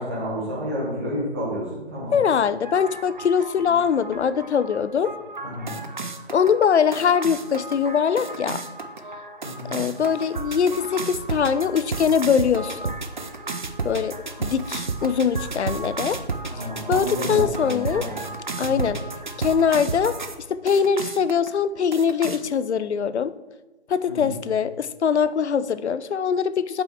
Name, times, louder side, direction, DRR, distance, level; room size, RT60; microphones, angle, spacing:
voice 1, 0.0-2.2 3.6-3.7 5.4-5.8 9.4-9.7 16.4-18.2 18.5-18.9 20.7-20.8 24.1-24.4, equal, 10° right, -6 dB, 1.1 m, -31 dB
voice 2, 2.1-5.1 6.3-8.6 9.6-12.9 13.8-16.2 16.6-18.0 18.6-19.0 19.4-20.2 20.5-23.3 23.9-26.8, left 7 dB, 75° left, 15 dB, 0.5 m, -22 dB
sound 1, 2.6-20.4 20.7-21.5 21.9-22.4, right 3 dB, 45° right, 0.5 m, -33 dB
8.7 x 5.2 x 3.4 m, 1.1 s
figure-of-eight pair, 165°, 34 cm